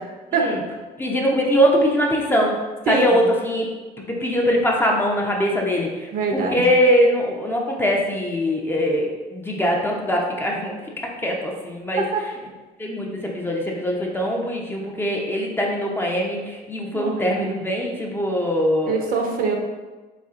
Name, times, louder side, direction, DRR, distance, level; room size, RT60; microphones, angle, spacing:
voice 1, 1.0-2.6 2.9-3.7 4.1-10.7 11.2-12.0 12.8-19.0, equal, 15° left, -1 dB, 0.5 m, -22 dB
voice 2, 6.1-6.6 12.1-12.2 16.9-17.4 18.9-19.6, right 4 dB, 55° right, 2 dB, 0.7 m, -23 dB
4.2 x 3.1 x 2.4 m, 1.2 s
cardioid pair, 110°, 17 cm